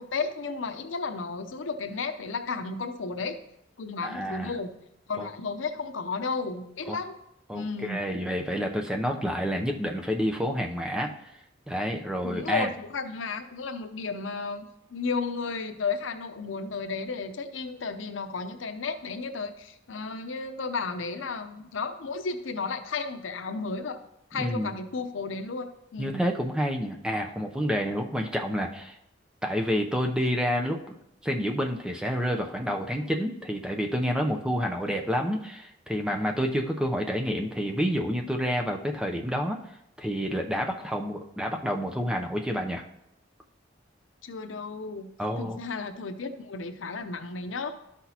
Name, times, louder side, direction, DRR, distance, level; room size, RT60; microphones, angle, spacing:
voice 1, 0.0-3.4 3.8-4.8 5.1-7.2 7.5-8.1 12.2-24.0 24.3-26.2 44.2-45.1 45.4-47.8, left 4 dB, 85° left, 9 dB, 0.7 m, -33 dB
voice 2, 4.0-4.5 5.2-5.3 6.9-7.0 7.5-11.1 11.7-12.7 24.4-24.7 26.0-29.0 29.4-30.9 31.2-39.6 40.0-42.8 45.2-45.6, equal, 5° right, 2 dB, 0.6 m, -29 dB
12.0 x 6.0 x 2.8 m, 0.78 s
head